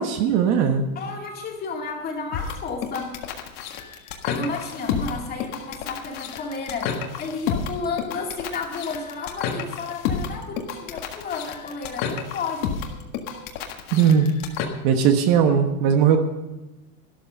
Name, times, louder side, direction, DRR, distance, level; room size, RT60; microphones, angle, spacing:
voice 1, 0.0-0.8 13.9-14.3 14.8-16.2, right 7 dB, 40° right, 6 dB, 1.2 m, -18 dB
voice 2, 1.0-3.1 4.2-12.8, left 4 dB, 20° left, 1 dB, 2.3 m, -32 dB
sound 1, 2.3-14.7, left 7 dB, 45° left, 1.7 m, -30 dB
12.5 x 11.0 x 5.4 m, 1.1 s
supercardioid pair, 150°, 42 cm